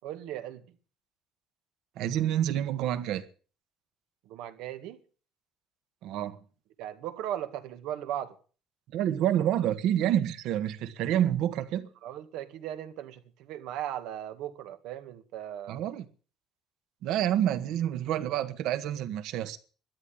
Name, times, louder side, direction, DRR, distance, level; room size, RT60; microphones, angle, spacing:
voice 1, 0.0-0.6 4.3-5.0 6.8-8.4 12.0-15.8, right 11 dB, 90° right, 2.0 m, -37 dB
voice 2, 2.0-3.2 6.0-6.4 8.9-11.9 15.7-16.0 17.0-19.6, right 11 dB, 75° right, 1.6 m, -28 dB
13.0 x 11.5 x 8.7 m
cardioid pair, 155°, 0 cm